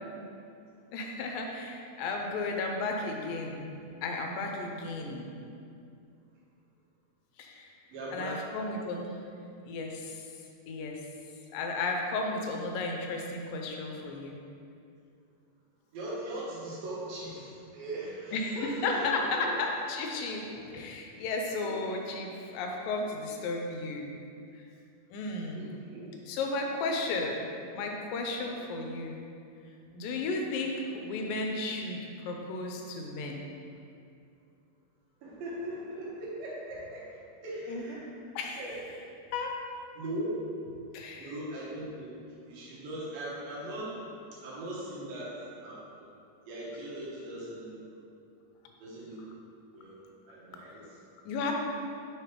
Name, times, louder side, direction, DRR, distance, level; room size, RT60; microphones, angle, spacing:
voice 1, 0.9-5.4 7.4-7.7 8.1-9.2 9.6-10.2 10.7-11.0 11.5-14.4 18.3-20.4 20.7-24.2 25.1-25.7 26.2-29.2 29.9-33.5 37.7-37.8 38.4-38.6 39.3-39.6 40.9-41.3 51.3-51.5, left 3 dB, 85° left, 1 dB, 2.3 m, -34 dB
voice 2, 7.9-8.6 15.9-19.5 20.5-20.7 21.6-21.7 25.5-26.1 28.6-28.7 35.2-37.1 37.4-38.0 38.6-38.8 40.0-40.4 41.1-42.2 42.4-43.9 44.4-45.3 45.6-46.0 46.5-47.8 48.8-49.2 49.7-50.9, right 1 dB, 90° right, -6 dB, 3.0 m, -39 dB
6.3 x 3.3 x 4.5 m, 2.5 s
omnidirectional pair, 4.0 m